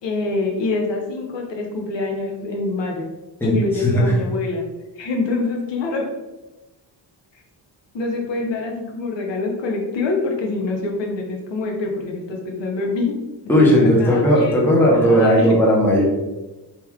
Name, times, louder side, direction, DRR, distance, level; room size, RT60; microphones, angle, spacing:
voice 1, 0.0-3.1 3.4-4.7 5.0-6.1 7.3-7.4 7.9-13.1 13.6-14.6 14.9-15.5, left 3 dB, 75° left, 1 dB, 0.7 m, -25 dB
voice 2, 3.4-4.1 13.5-16.0, equal, 5° left, -4 dB, 0.6 m, -16 dB
2.9 x 2.2 x 3.5 m, 1.1 s
wide cardioid pair, 160°, 44 cm